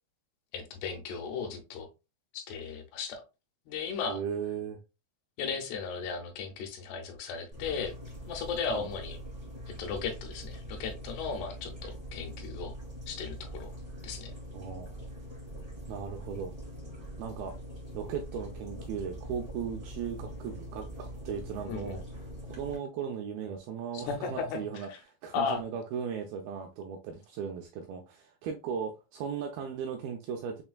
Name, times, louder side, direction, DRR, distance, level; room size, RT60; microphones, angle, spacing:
voice 1, 0.5-1.9 2.3-3.2 3.7-4.2 5.4-8.0 8.3-9.2 9.8-12.7 13.1-13.7 14.0-14.3 21.7-22.0 23.9-24.6 25.3-25.6, left 5 dB, 90° left, 4 dB, 2.9 m, -36 dB
voice 2, 4.1-4.8 8.7-8.9 14.5-15.0 15.9-16.5 17.2-17.6 17.9-22.0 22.5-30.6, right 7 dB, 85° right, 3 dB, 2.1 m, -37 dB
sound 1, 7.5-22.8, right 1 dB, 45° right, 0.5 m, -43 dB
6.7 x 2.5 x 2.2 m, 0.28 s
omnidirectional pair, 4.6 m